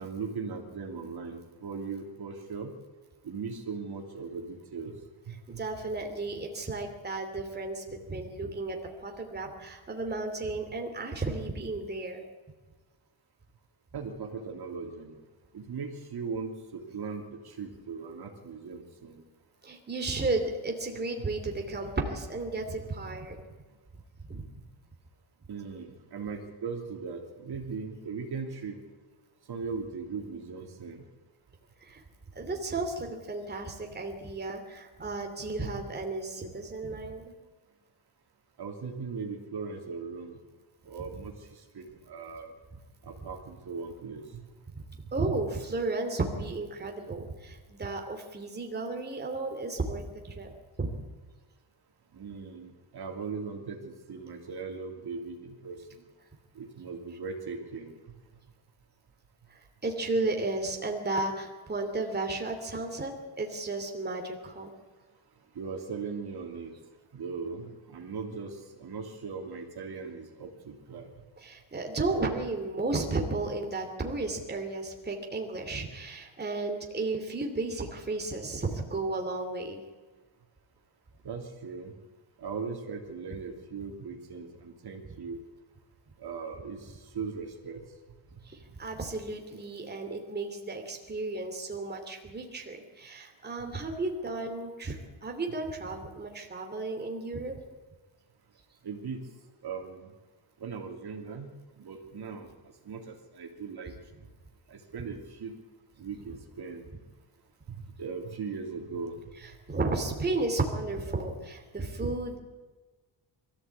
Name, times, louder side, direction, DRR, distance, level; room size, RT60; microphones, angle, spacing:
voice 1, 0.0-2.7 3.2-4.9 5.3-5.6 13.9-15.1 15.5-19.2 25.5-28.8 29.5-31.0 38.6-40.3 40.9-41.3 41.7-42.5 43.1-44.4 52.1-56.0 56.5-57.9 65.5-66.7 67.1-71.1 81.2-81.9 82.4-85.4 86.2-87.8 98.8-99.2 99.6-100.1 100.6-101.5 101.8-102.5 102.8-103.9 104.7-105.6 106.0-106.8 107.7-109.2, right 5 dB, 50° right, 2 dB, 3.1 m, -39 dB
voice 2, 5.5-12.3 19.6-23.4 24.3-24.4 31.8-32.0 32.3-37.2 45.1-50.5 50.8-50.9 59.5-64.7 71.4-79.8 88.4-97.6 109.4-112.4, right 3 dB, 20° right, 2 dB, 2.8 m, -33 dB
22.5 x 14.5 x 8.5 m, 1.3 s
wide cardioid pair, 155°, 49 cm